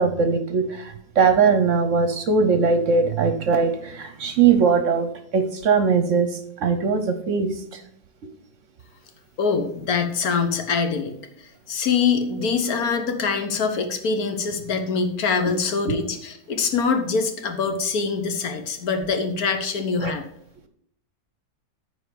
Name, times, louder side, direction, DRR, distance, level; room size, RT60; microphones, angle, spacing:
voice 1, 0.0-7.8 20.0-20.1, right 5 dB, 60° right, 8 dB, 1.0 m, -20 dB
voice 2, 9.4-11.1 11.7-20.2, left 5 dB, 65° left, 6 dB, 1.5 m, -24 dB
9.3 x 4.5 x 6.8 m, 0.70 s
omnidirectional pair, 1.7 m